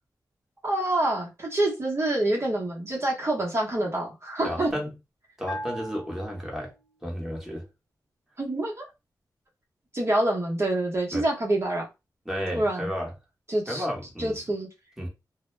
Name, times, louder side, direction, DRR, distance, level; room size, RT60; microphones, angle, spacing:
voice 1, 0.6-4.7 8.4-8.8 9.9-11.9 12.5-12.9 13.5-13.8 14.2-14.7, right 1 dB, 40° right, 0.8 m, -26 dB
voice 2, 4.4-4.9 5.4-6.7 7.0-7.6 11.1-11.3 12.3-13.1 13.7-14.3 15.0-15.1, equal, 5° right, 1.0 m, -32 dB
Bell, 5.5-7.1, equal, 30° left, 0.8 m, -39 dB
2.1 x 2.0 x 3.1 m
wide cardioid pair, 75°, 7 cm